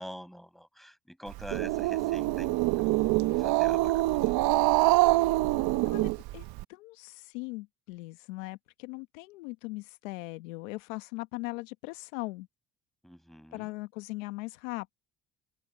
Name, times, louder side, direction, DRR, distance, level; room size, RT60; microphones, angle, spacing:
voice 1, 0.0-3.0 3.2-4.4 13.0-13.7, equal, ahead, 6.3 m, -46 dB
Growling, 1.3-6.6, right 19 dB, 70° right, 1.0 m, -25 dB
voice 2, 5.9-12.5 13.5-14.9, left 23 dB, 90° left, 1.2 m, -39 dB
open air
supercardioid pair, 65°, 38 cm